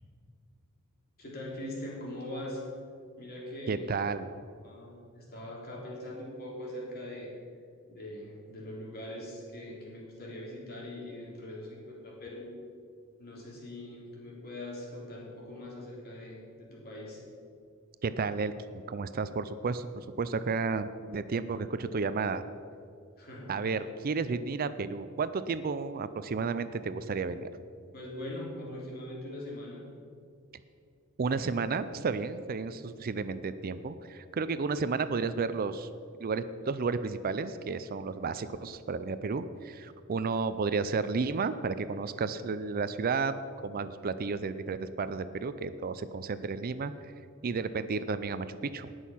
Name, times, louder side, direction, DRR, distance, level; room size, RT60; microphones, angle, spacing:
voice 1, 1.2-2.6 3.2-3.9 4.6-7.3 7.9-12.5 13.2-17.2 23.2-23.7 27.9-29.8, left 1 dB, 50° left, -4 dB, 3.5 m, -42 dB
voice 2, 3.7-4.3 18.0-22.4 23.5-27.5 31.2-35.9 36.2-47.1 47.4-48.9, right 4 dB, 45° right, 13 dB, 0.4 m, -32 dB
18.5 x 6.4 x 5.7 m, 2.4 s
head